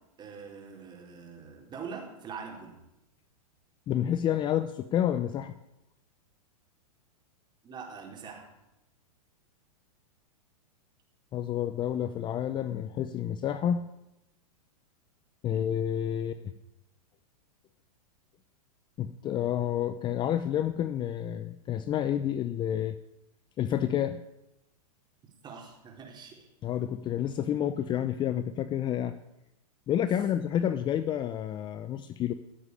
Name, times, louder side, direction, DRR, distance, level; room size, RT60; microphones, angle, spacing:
voice 1, 0.2-2.8 7.6-8.5 15.5-15.8 25.4-26.5, right 5 dB, 25° right, 1 dB, 4.3 m, -43 dB
voice 2, 3.9-5.5 11.3-13.9 15.4-16.5 19.0-23.0 23.6-24.2 26.6-29.2 29.9-32.3, left 10 dB, 25° left, 12 dB, 0.7 m, -29 dB
15.5 x 8.1 x 9.8 m, 0.91 s
hypercardioid pair, 130°, 19 cm